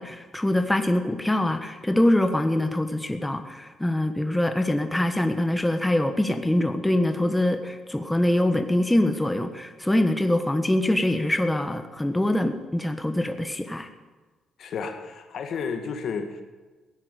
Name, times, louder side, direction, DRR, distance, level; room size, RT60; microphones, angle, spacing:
voice 1, 0.0-13.9, left 1 dB, 10° left, 7 dB, 1.3 m, -24 dB
voice 2, 14.6-16.4, left 5 dB, 65° left, 7 dB, 1.9 m, -32 dB
16.5 x 10.5 x 8.3 m, 1.3 s
cardioid pair, 90°, 0 cm